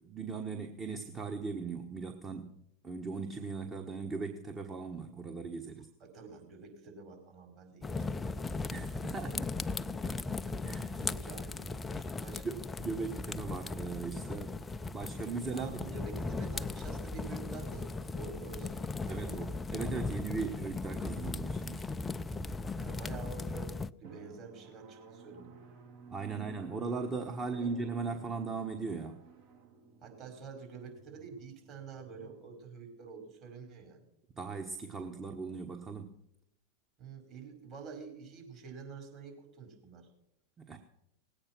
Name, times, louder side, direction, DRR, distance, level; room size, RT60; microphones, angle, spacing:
voice 1, 0.0-2.5 2.8-5.9 8.7-9.5 10.0-10.2 10.6-11.1 12.4-14.6 14.9-15.8 19.1-21.9 26.1-29.2 34.4-36.2 40.6-40.8, right 4 dB, 25° right, 4 dB, 1.3 m, -38 dB
voice 2, 6.0-8.6 9.0-9.2 9.8-12.5 15.5-19.5 19.9-20.2 22.8-23.7 24.0-25.6 26.3-26.5 27.4-27.7 30.0-34.0 37.0-40.1, right 5 dB, 45° right, 3 dB, 5.1 m, -48 dB
sound 1, 7.8-23.9, left 3 dB, 15° left, 0.4 m, -38 dB
Drum, 24.0-33.3, right 4 dB, 60° right, 2.9 m, -54 dB
19.0 x 8.8 x 6.0 m, 0.78 s
hypercardioid pair, 100°, 0 cm